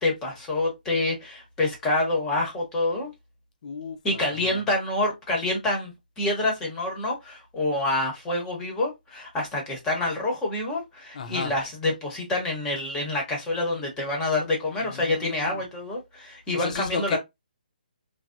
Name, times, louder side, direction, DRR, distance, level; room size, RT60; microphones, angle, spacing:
voice 1, 0.0-3.1 4.0-17.2, left 2 dB, 10° left, 0.9 m, -27 dB
voice 2, 3.6-4.6 11.1-11.5 14.8-15.6 16.5-17.2, left 5 dB, 50° left, 0.6 m, -34 dB
3.2 x 2.1 x 2.5 m
hypercardioid pair, 160°, 5 cm